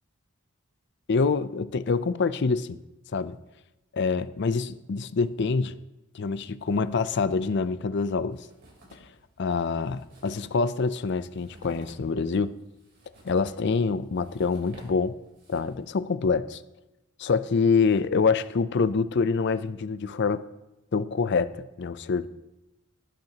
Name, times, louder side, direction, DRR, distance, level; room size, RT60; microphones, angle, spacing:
voice 1, 1.1-2.8 3.1-3.4 3.9-5.8 6.1-8.4 9.4-12.6 13.2-15.1 15.5-16.6 17.2-20.5 20.9-22.3, left 4 dB, 55° left, 14 dB, 0.5 m, -26 dB
sound 1, 8.3-9.2 9.5-9.6 9.8-15.9, right 1 dB, 55° right, 3.6 m, -52 dB
19.0 x 9.3 x 2.9 m, 0.96 s
head